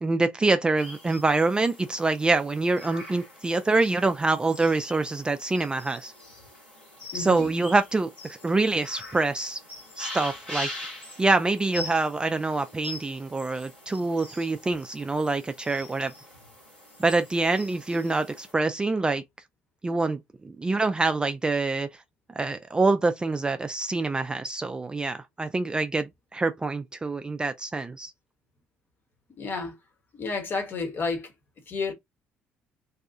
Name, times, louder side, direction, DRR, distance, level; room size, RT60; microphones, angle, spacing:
voice 1, 0.0-6.1 7.1-9.6 10.0-10.7 11.2-16.1 17.0-19.2 19.8-21.9 22.4-28.1, right 3 dB, 15° right, 0.3 m, -25 dB
sound 1, 0.8-18.5, left 1 dB, 85° left, 1.3 m, -43 dB
voice 2, 7.1-7.5 29.4-29.7 30.1-31.3 31.7-31.9, left 4 dB, 40° left, 1.0 m, -31 dB
2.7 x 2.3 x 2.5 m
figure-of-eight pair, 50°, 5 cm